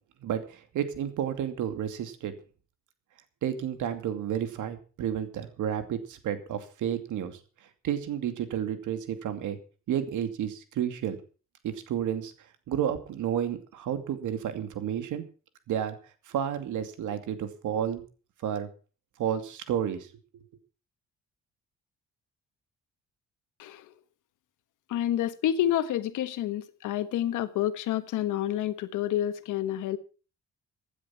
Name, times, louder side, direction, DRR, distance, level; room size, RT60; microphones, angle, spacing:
voice 1, 0.2-2.3 3.4-7.4 7.8-9.6 9.9-11.2 11.6-12.3 12.7-15.3 15.7-16.0 16.3-18.0 18.4-18.7 19.2-20.1, right 9 dB, 80° right, 2.5 m, -31 dB
voice 2, 23.6-23.9 24.9-30.0, left 11 dB, 85° left, 1.4 m, -29 dB
16.0 x 10.0 x 5.7 m
cardioid pair, 90°, 30 cm